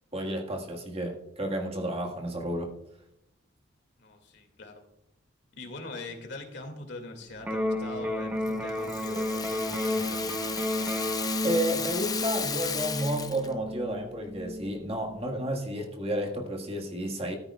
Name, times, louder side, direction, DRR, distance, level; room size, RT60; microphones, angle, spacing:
voice 1, 0.1-2.7 11.4-17.3, right 1 dB, 30° right, 1.7 m, -31 dB
voice 2, 4.0-4.8 5.6-10.3, left 2 dB, 60° left, 2.3 m, -42 dB
Electric guitar, 7.4-15.4, left 1 dB, 10° right, 1.0 m, -33 dB
Rattle (instrument), 8.5-13.5, left 6 dB, 20° left, 0.6 m, -34 dB
14.5 x 13.0 x 2.4 m
head